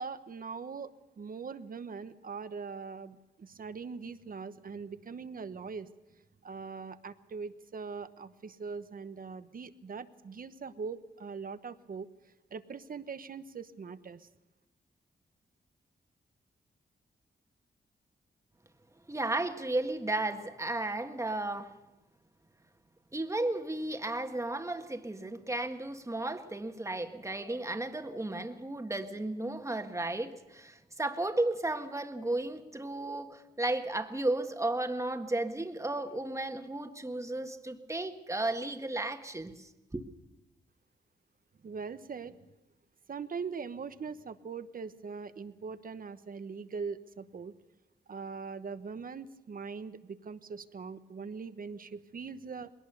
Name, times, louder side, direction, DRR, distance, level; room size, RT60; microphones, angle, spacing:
voice 1, 0.0-5.9 6.4-12.1 12.5-14.3 41.6-42.5 43.1-47.5 48.1-52.7, right 5 dB, 55° right, 12 dB, 1.1 m, -41 dB
voice 2, 19.1-21.7 23.1-40.0, right 2 dB, 15° right, 6 dB, 1.6 m, -34 dB
21.0 x 18.0 x 6.9 m, 1.0 s
cardioid pair, 75°, 18 cm